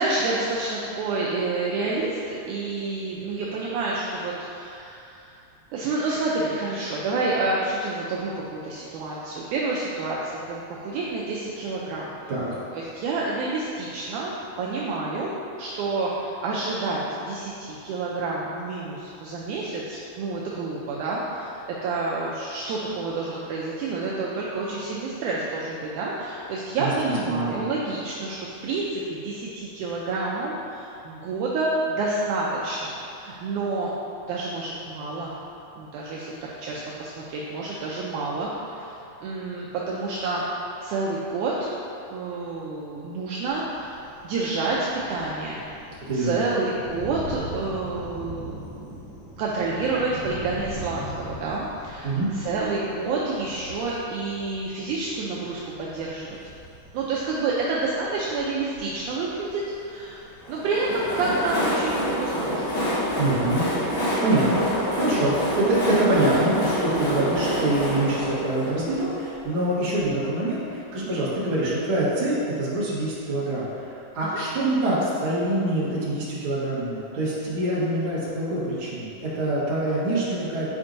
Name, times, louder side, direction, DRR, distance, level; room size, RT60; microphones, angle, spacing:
voice 1, 0.0-5.3 5.7-12.1 12.7-33.9 34.3-35.3 35.8-36.3 36.6-39.0 39.2-40.5 40.8-41.7 42.1-45.7 46.1-56.4 56.9-60.2 60.5-62.8 74.2-74.4, right 3 dB, 85° right, -5 dB, 1.8 m, -29 dB
voice 2, 27.2-27.7 46.0-46.4 52.0-52.3 63.2-63.7 64.2-80.7, right 1 dB, 50° right, -9 dB, 1.6 m, -25 dB
Thunder, 43.5-61.0, equal, 60° left, 1.4 m, -42 dB
Train, 60.4-70.1, equal, 75° left, 3.0 m, -27 dB
8.7 x 4.4 x 2.6 m, 2.7 s
omnidirectional pair, 4.1 m